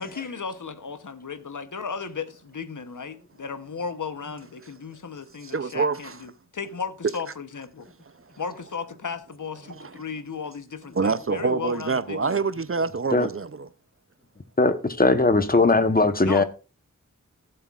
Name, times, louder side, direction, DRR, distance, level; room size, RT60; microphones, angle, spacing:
voice 1, 0.0-7.9 8.4-12.4 16.2-16.4, left 5 dB, 70° left, 0.9 m, -35 dB
voice 2, 5.4-6.2 9.7-10.0 10.9-13.7, right 4 dB, 45° right, 0.5 m, -26 dB
voice 3, 14.6-16.4, left 3 dB, 30° left, 0.9 m, -19 dB
16.0 x 7.6 x 2.4 m
wide cardioid pair, 55°, 32 cm